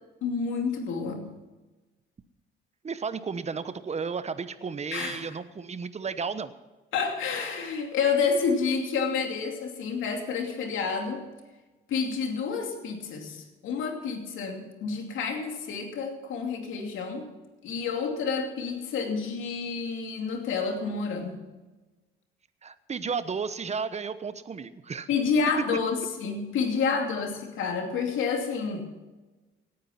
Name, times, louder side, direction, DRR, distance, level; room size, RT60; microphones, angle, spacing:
voice 1, 0.2-1.3 4.9-5.4 6.9-11.2 11.9-17.3 17.6-21.4 25.1-28.9, left 5 dB, 85° left, 3 dB, 2.7 m, -29 dB
voice 2, 2.8-6.5 22.6-25.1, right 5 dB, 35° right, 13 dB, 1.0 m, -33 dB
17.5 x 9.7 x 5.8 m, 1.2 s
cardioid pair, 90°, 20 cm